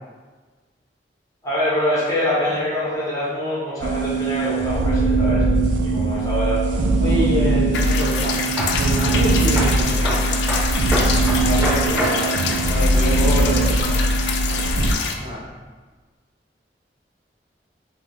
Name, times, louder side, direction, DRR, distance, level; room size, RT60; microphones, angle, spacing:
voice 1, 1.4-5.5 5.8-7.4 11.4-13.9, equal, 20° left, -10 dB, 1.2 m, -25 dB
sound 1, 3.8-14.9, right 2 dB, 80° right, 0.4 m, -20 dB
voice 2, 7.0-8.4 8.8-10.4 15.2-15.4, left 1 dB, 35° right, -7 dB, 0.7 m, -26 dB
sound 2, 7.7-15.1, left 5 dB, 75° left, 0.3 m, -26 dB
sound 3, 8.6-8.8 9.1-9.3 9.6-9.7 10.0-10.2 10.5-12.6 12.9-13.0, equal, 20° right, 1.2 m, -25 dB
3.6 x 2.5 x 3.1 m, 1.4 s
head